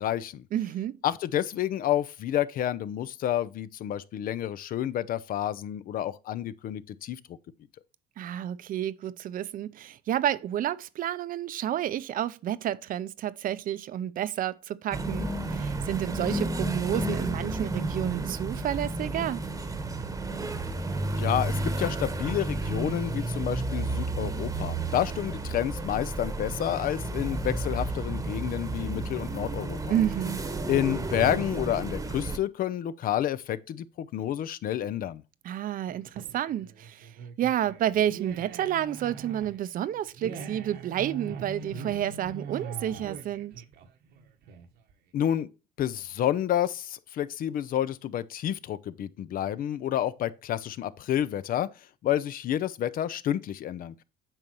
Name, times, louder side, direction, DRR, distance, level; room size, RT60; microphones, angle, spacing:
voice 1, 0.0-0.4 1.0-7.4 21.1-30.0 30.7-35.2 45.1-45.5 45.8-51.7 52.0-54.0, left 11 dB, 60° left, 0.6 m, -29 dB
voice 2, 0.5-1.0 8.2-19.5 29.9-30.4 35.4-37.1 37.4-43.5, right 11 dB, 55° right, 0.6 m, -30 dB
sound 1, 14.9-32.4, right 2 dB, 20° right, 1.1 m, -31 dB
sound 2, 35.9-44.9, right 5 dB, 75° right, 1.2 m, -42 dB
8.9 x 5.4 x 3.0 m
cardioid pair, 110°, 17 cm